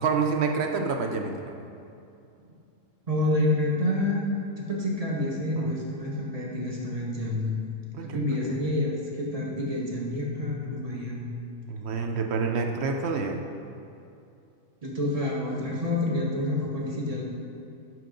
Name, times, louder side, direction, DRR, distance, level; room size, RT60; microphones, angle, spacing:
voice 1, 0.0-1.5 5.6-5.7 7.9-8.2 11.7-13.4, right 5 dB, 60° right, 4 dB, 0.7 m, -28 dB
voice 2, 3.1-4.2 4.6-7.5 8.0-11.3 14.8-17.2, left 1 dB, 30° right, -2 dB, 1.1 m, -28 dB
11.0 x 4.7 x 3.8 m, 2.6 s
omnidirectional pair, 1.6 m